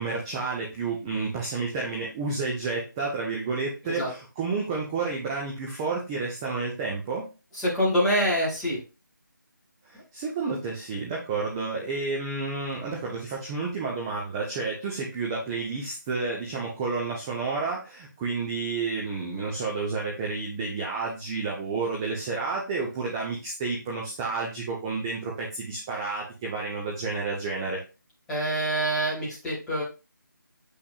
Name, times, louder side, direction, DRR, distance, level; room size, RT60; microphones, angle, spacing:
voice 1, 0.0-7.3 9.8-27.8, right 4 dB, 10° right, -3 dB, 0.8 m, -30 dB
voice 2, 7.6-8.8 28.3-29.8, equal, 5° left, -9 dB, 2.3 m, -25 dB
8.3 x 6.0 x 2.4 m, 0.29 s
figure-of-eight pair, 160°, 11 cm